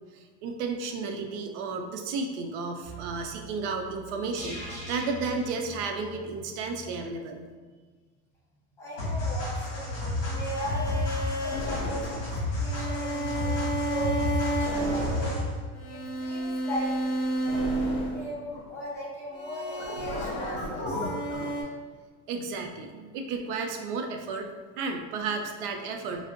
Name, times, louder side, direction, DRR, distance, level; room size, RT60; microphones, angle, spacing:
voice 1, 0.1-7.4 22.3-24.5 24.8-26.3, right 4 dB, 70° right, 4 dB, 0.5 m, -33 dB
sound 1, 2.8-7.0 7.4-7.5, right 1 dB, 30° right, 0.9 m, -43 dB
voice 2, 8.8-15.5 15.8-17.0 18.1-21.2, equal, 10° left, -7 dB, 0.4 m, -38 dB
sound 2, 9.0-15.6, left 2 dB, 40° left, 1.2 m, -31 dB
sound 3, 10.2-18.8 19.3-21.6, right 1 dB, 60° left, 0.9 m, -31 dB
3.3 x 2.0 x 2.5 m, 1.4 s
cardioid pair, 160°, 36 cm